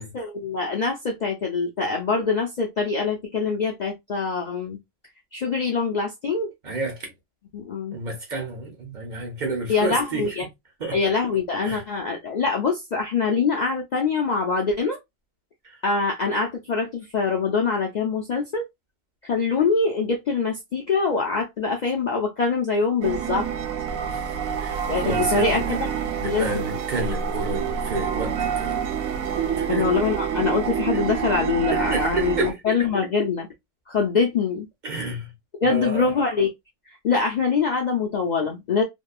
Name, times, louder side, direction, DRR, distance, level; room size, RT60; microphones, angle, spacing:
voice 1, 0.0-4.8 5.3-6.5 7.5-8.0 9.7-10.5 10.9-15.0 15.8-18.6 19.2-23.5 24.9-25.9 26.2-26.6 29.7-33.5 33.9-34.7 35.6-36.5 37.0-38.8, left 4 dB, 85° left, 0.3 m, -24 dB
voice 2, 6.6-7.1 7.9-10.3 10.8-11.0 11.6-11.8 24.1-24.2 24.6-25.8 26.2-28.7 29.5-29.9 30.9-31.0 31.7-32.5 34.8-35.3 35.6-36.1, right 3 dB, 40° right, 0.9 m, -30 dB
sound 1, 23.0-32.5, right 7 dB, 85° right, 1.0 m, -27 dB
2.7 x 2.2 x 2.2 m
omnidirectional pair, 1.4 m